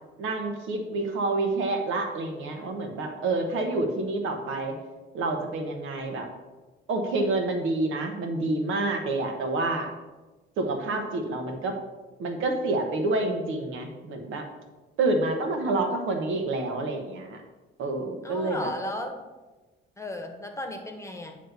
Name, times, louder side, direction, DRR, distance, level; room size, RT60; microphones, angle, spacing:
voice 1, 0.2-4.7 5.1-6.3 6.9-9.9 10.6-11.7 12.2-14.5 15.0-17.4 17.8-18.7, right 2 dB, 80° right, 4 dB, 1.2 m, -28 dB
voice 2, 18.2-19.2 20.0-21.4, left 1 dB, 15° left, 4 dB, 1.2 m, -35 dB
9.4 x 3.3 x 6.7 m, 1.2 s
cardioid pair, 90°, 20 cm